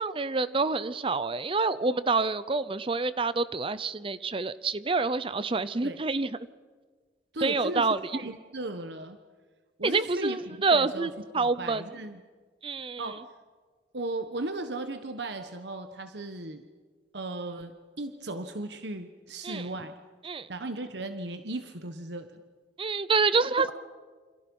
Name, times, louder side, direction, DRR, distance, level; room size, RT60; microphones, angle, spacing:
voice 1, 0.0-6.3 7.4-8.2 9.8-11.8 12.6-13.1 19.4-19.7 20.2-20.5 22.8-23.7, right 3 dB, 30° right, 15 dB, 0.6 m, -27 dB
voice 2, 7.3-9.2 9.8-11.1 11.4-12.2 13.0-13.2 13.9-16.6 17.1-20.0 20.5-22.4, right 2 dB, 65° right, 8 dB, 1.3 m, -36 dB
29.0 x 27.5 x 5.5 m, 1.4 s
head